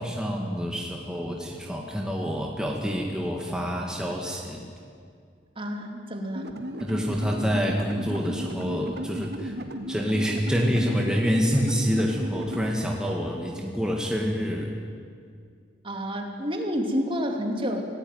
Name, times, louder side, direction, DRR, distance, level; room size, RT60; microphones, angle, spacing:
voice 1, 0.0-4.7 6.8-9.5 9.9-14.7, equal, 5° right, -1 dB, 1.9 m, -27 dB
voice 2, 5.6-6.5 15.8-17.8, equal, 30° right, 3 dB, 2.9 m, -29 dB
sound 1, 6.3-12.7, equal, 65° right, 1.9 m, -35 dB
27.5 x 17.0 x 9.4 m, 2.2 s
head